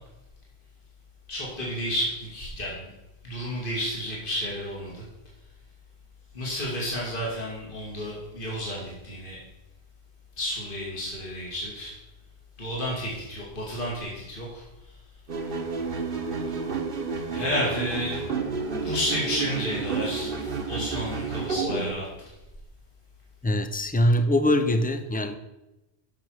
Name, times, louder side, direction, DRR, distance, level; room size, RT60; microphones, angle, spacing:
voice 1, 1.3-2.9 3.2-5.0 6.3-9.4 10.4-11.9 12.6-15.0 17.3-18.2 18.8-22.3, equal, 55° left, -5 dB, 2.3 m, -31 dB
sound 1, 15.3-21.9, right 4 dB, 55° right, 1.2 m, -30 dB
voice 2, 23.4-25.4, left 1 dB, 15° left, 8 dB, 0.3 m, -23 dB
7.6 x 6.0 x 6.3 m, 0.98 s
omnidirectional pair, 1.1 m